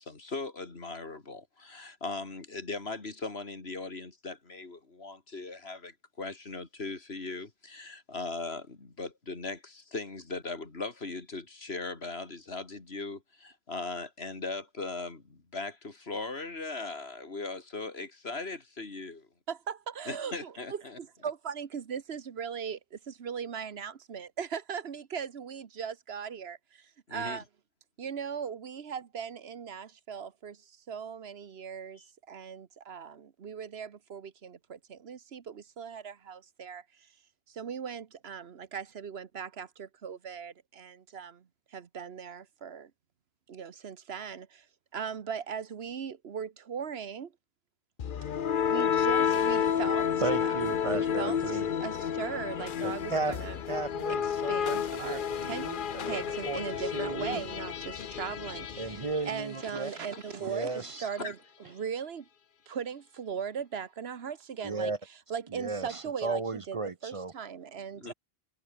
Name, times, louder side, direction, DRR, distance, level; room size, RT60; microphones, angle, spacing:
voice 1, 0.0-19.3 20.1-21.0 27.1-27.4 32.0-32.1 60.1-60.2 61.0-61.3 68.0-68.1, left 3 dB, 85° left, 3.1 m, -39 dB
voice 2, 19.5-27.4 28.0-37.1 37.5-42.9 43.5-44.7 44.9-47.3 48.6-50.1 50.4-53.6 54.2-55.7 56.1-62.3 62.7-64.9 65.3-68.1, right 7 dB, 80° right, 1.4 m, -39 dB
sound 1, 48.0-59.9, left 8 dB, 60° left, 0.9 m, -31 dB
voice 3, 50.2-51.7 52.8-53.4 53.7-56.2 56.5-56.6 56.9-57.4 58.8-59.9 60.3-61.0 64.6-65.0 65.5-67.3, right 3 dB, 35° right, 0.8 m, -34 dB
omnidirectional pair, 1.0 m